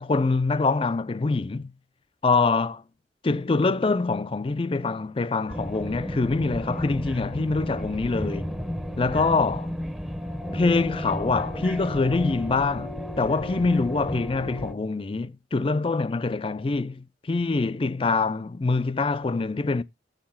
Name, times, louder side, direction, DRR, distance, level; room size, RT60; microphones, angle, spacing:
voice 1, 0.0-1.7 2.2-2.8 3.2-8.5 9.0-9.7 10.5-19.8, left 3 dB, 30° left, 0.4 m, -25 dB
sound 1, 5.5-14.7, equal, ahead, 0.7 m, -33 dB
6.8 x 6.6 x 5.7 m
head